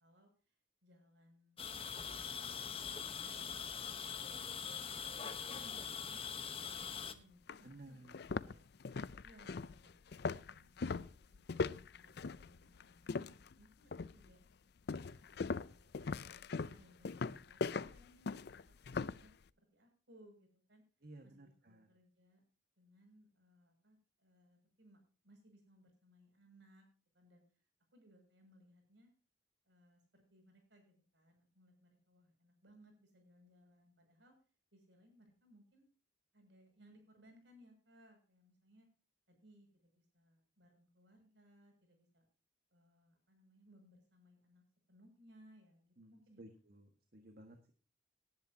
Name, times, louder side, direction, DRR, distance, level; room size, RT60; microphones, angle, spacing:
voice 1, 0.0-6.2 6.6-8.6 9.2-14.4 15.0-15.4 15.7-17.6 17.9-19.3 19.6-20.8 21.2-22.4 22.8-25.0 25.2-26.8 27.1-27.4 27.9-29.1 29.7-34.3 34.7-35.9 36.3-38.9 39.3-42.3 42.7-46.4, equal, 70° right, 4 dB, 6.7 m, -66 dB
sound 1, 1.6-7.1, left 7 dB, 30° left, 1.0 m, -43 dB
sound 2, 6.9-7.0 7.5-7.6 8.0-13.5 13.9-14.3 14.9-19.3, left 4 dB, 55° left, 0.5 m, -40 dB
voice 2, 7.6-8.1 21.0-21.9 46.0-47.7, right 1 dB, 50° right, 5 dB, 1.7 m, -56 dB
18.5 x 10.5 x 2.8 m, 0.37 s
head